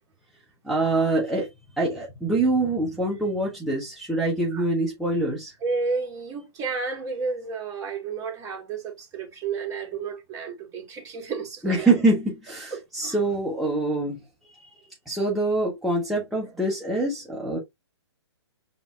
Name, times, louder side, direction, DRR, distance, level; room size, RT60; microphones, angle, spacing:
voice 1, 0.6-1.5 1.8-5.5 11.6-14.2 14.5-14.7 15.1-17.6, right 2 dB, ahead, 1.0 m, -25 dB
voice 2, 5.6-11.9 12.7-13.1, right 4 dB, 20° right, 1.7 m, -31 dB
6.9 x 2.7 x 2.4 m
hypercardioid pair, 130°, 15 cm